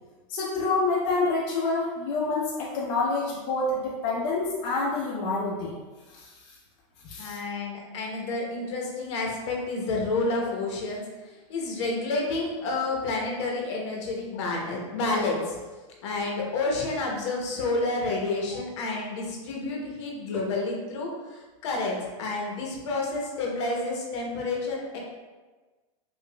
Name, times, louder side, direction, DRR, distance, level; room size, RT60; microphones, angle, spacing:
voice 1, 0.3-5.7 6.1-6.3 7.0-7.4, left 3 dB, 40° left, -6 dB, 0.6 m, -27 dB
voice 2, 7.2-15.6 16.0-25.0, left 3 dB, 65° left, -1 dB, 0.9 m, -30 dB
4.9 x 2.4 x 2.3 m, 1.3 s
supercardioid pair, 150°, 16 cm